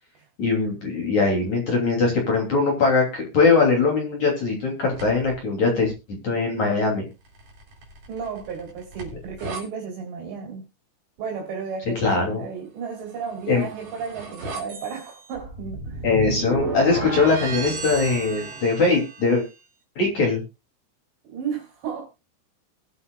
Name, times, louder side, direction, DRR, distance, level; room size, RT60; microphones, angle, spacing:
voice 1, 0.4-7.0 12.0-12.5 13.5-13.7 16.0-19.4 20.0-20.4, left 4 dB, 45° left, 3.9 m, -21 dB
sound 1, 4.9-5.4 7.2-9.6 13.1-19.5, right 3 dB, 50° right, 4.7 m, -34 dB
voice 2, 8.1-10.6 11.2-16.0 21.3-22.1, right 6 dB, 65° right, 5.6 m, -33 dB
22.0 x 8.2 x 2.4 m
omnidirectional pair, 5.3 m